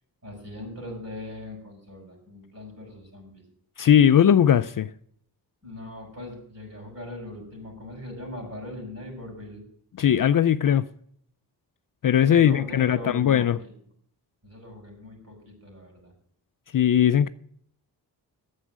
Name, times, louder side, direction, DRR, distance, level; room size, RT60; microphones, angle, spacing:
voice 1, 0.2-3.4 5.6-9.6 12.2-13.7 14.4-16.1, left 1 dB, 35° right, 6.5 m, -40 dB
voice 2, 3.8-4.9 10.0-10.9 12.0-13.6 16.7-17.3, left 9 dB, 50° left, 0.5 m, -19 dB
9.8 x 7.4 x 9.4 m
wide cardioid pair, 100°, 41 cm